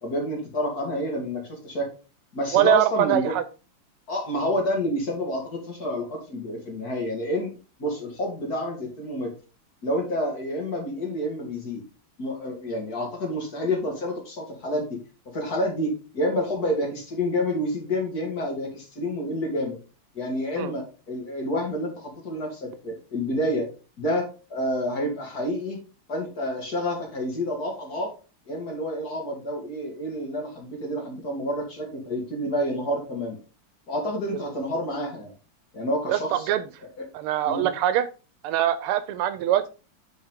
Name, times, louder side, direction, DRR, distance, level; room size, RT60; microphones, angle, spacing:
voice 1, 0.0-1.9 2.3-3.4 4.1-7.5 7.8-9.3 9.8-11.8 12.2-15.0 15.3-19.8 20.1-23.7 24.0-25.8 26.1-28.1 28.5-33.4 33.9-35.3 35.7-36.5 36.8-37.1 37.5-37.7, left 1 dB, 45° left, 1 dB, 2.2 m, -29 dB
voice 2, 2.5-3.4 20.6-20.7 36.1-36.2 36.5-36.6 37.1-38.1 38.4-39.7, right 12 dB, 85° right, 13 dB, 1.5 m, -23 dB
8.0 x 4.7 x 3.6 m, 0.34 s
omnidirectional pair, 2.4 m